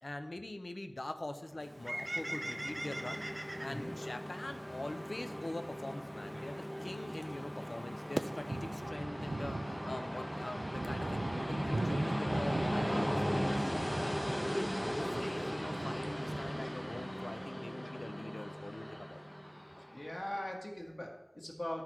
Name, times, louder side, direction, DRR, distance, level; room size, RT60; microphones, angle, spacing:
voice 1, 0.0-3.2 3.6-14.2 14.5-19.2, left 1 dB, 75° left, 7 dB, 0.6 m, -44 dB
Train, 1.6-20.2, equal, 10° left, 0.5 m, -39 dB
Bird, 1.6-8.9, right 1 dB, 40° right, 0.6 m, -45 dB
sound 1, 8.2-17.5, right 2 dB, 85° right, 0.3 m, -40 dB
voice 2, 19.9-21.8, left 1 dB, 50° left, -1 dB, 1.5 m, -41 dB
11.0 x 3.9 x 4.5 m, 0.99 s
wide cardioid pair, 45°, 0 cm